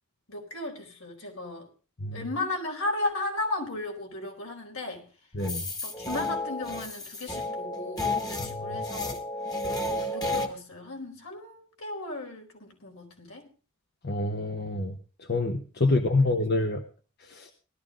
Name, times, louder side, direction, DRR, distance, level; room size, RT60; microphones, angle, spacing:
voice 1, 0.3-1.7 2.1-5.1 5.8-9.2 10.1-13.5 15.8-16.3, left 2 dB, 75° left, 2 dB, 4.5 m, -35 dB
sound 1, 5.4-10.5, left 2 dB, 20° left, 1.5 m, -32 dB
voice 2, 8.4-8.8 14.0-15.0 15.3-16.8 17.3-17.5, left 2 dB, 50° left, 5 dB, 1.1 m, -27 dB
18.0 x 12.5 x 3.8 m, 0.36 s
head